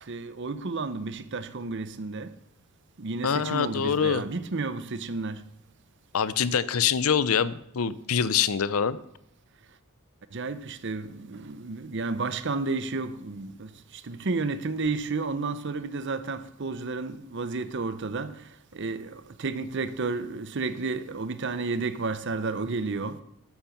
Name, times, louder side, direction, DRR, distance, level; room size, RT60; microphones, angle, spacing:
voice 1, 0.1-2.3 3.0-5.4 10.3-13.7 14.1-18.3 18.7-23.2, right 3 dB, 55° right, 0.7 m, -31 dB
voice 2, 3.2-4.2 6.1-9.0, left 7 dB, 80° left, 0.6 m, -25 dB
13.0 x 8.9 x 5.8 m
head